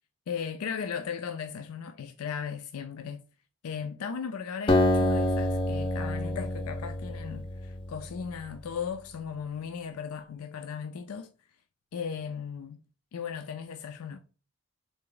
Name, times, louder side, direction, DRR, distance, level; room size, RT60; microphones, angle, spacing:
voice 1, 0.3-3.2 3.6-11.3 11.9-12.8 13.1-14.2, left 7 dB, 90° left, 0.4 m, -36 dB
Acoustic guitar, 4.7-8.3, left 1 dB, 25° left, 0.4 m, -27 dB
3.9 x 3.3 x 3.8 m
head